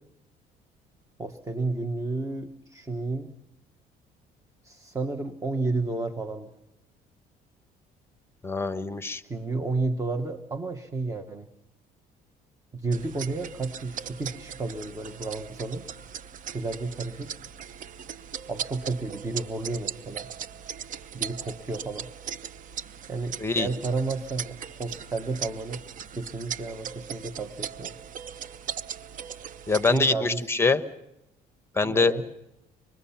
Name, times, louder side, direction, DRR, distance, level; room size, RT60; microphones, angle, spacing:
voice 1, 1.2-3.3 4.6-6.5 9.3-11.5 12.7-15.9 16.5-17.3 18.5-20.3 21.1-22.1 23.1-25.8 26.1-28.0 29.9-30.5 31.8-32.2, right 3 dB, 20° right, 8 dB, 1.2 m, -31 dB
voice 2, 8.4-9.2 23.4-23.7 29.7-30.8 31.7-32.1, left 3 dB, 15° left, 11 dB, 1.1 m, -24 dB
sound 1, 12.9-30.0, right 8 dB, 50° right, 0.7 m, -39 dB
25.0 x 21.5 x 5.8 m, 0.90 s
cardioid pair, 110°, 17 cm